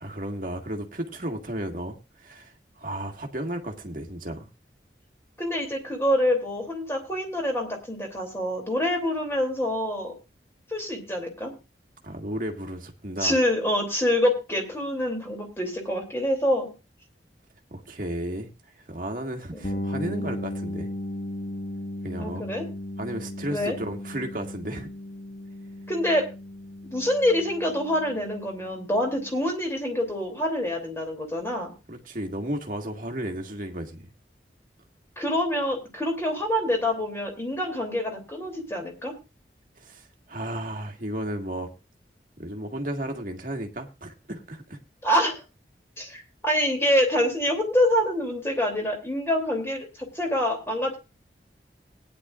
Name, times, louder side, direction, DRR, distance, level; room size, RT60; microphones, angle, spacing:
voice 1, 0.0-4.5 12.0-13.4 17.7-18.5 18.9-20.9 22.0-22.5 23.0-24.9 31.9-34.1 39.8-41.7 42.4-44.8, right 1 dB, 50° right, 3 dB, 1.7 m, -33 dB
voice 2, 5.4-10.1 10.7-11.5 13.2-16.7 19.5-19.8 22.2-22.6 23.5-23.8 25.9-26.3 26.8-31.7 35.2-39.1 45.0-45.4 46.0-51.0, left 1 dB, 15° left, 3 dB, 2.8 m, -26 dB
sound 1, 19.6-29.3, left 1 dB, 55° left, 1.3 m, -36 dB
19.0 x 10.0 x 2.4 m, 0.28 s
head